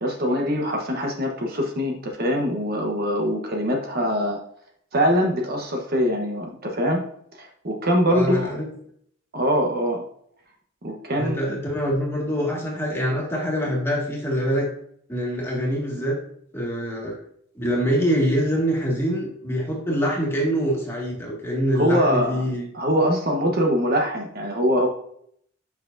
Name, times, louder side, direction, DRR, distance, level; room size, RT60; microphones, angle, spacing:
voice 1, 0.0-4.4 4.9-7.0 7.4-8.5 9.3-10.0 10.8-11.4 21.7-22.4 22.7-24.9, equal, 50° right, 1 dB, 1.1 m, -23 dB
voice 2, 8.1-8.7 11.1-14.7 15.1-16.2 16.5-17.2 17.6-22.7, equal, 10° left, -3 dB, 1.8 m, -24 dB
7.4 x 5.9 x 2.6 m, 0.67 s
head